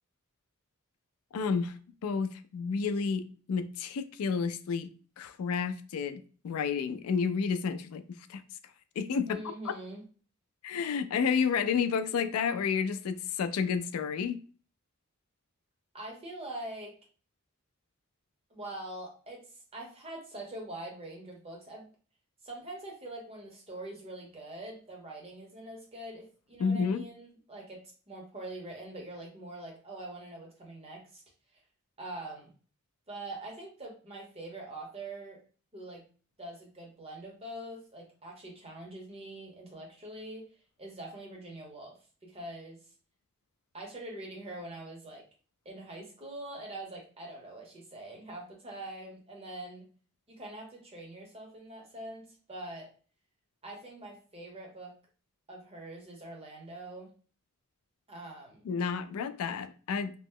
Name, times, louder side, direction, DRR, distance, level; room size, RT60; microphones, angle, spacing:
voice 1, 1.3-1.7 2.0-3.2 3.5-4.9 5.2-8.4 9.0-9.7 10.6-14.4 26.6-27.0 58.6-60.1, left 6 dB, 85° left, 0.3 m, -30 dB
voice 2, 9.3-10.0 15.9-17.0 18.5-19.4 19.7-21.9 22.4-31.2 32.0-32.5 33.1-35.4 35.7-36.0 36.4-40.5 40.8-42.8 43.7-45.2 45.6-49.9 50.3-52.9 53.6-54.9 55.5-57.1 58.1-58.7, right 1 dB, 30° right, 1.0 m, -44 dB
2.9 x 2.0 x 3.6 m
head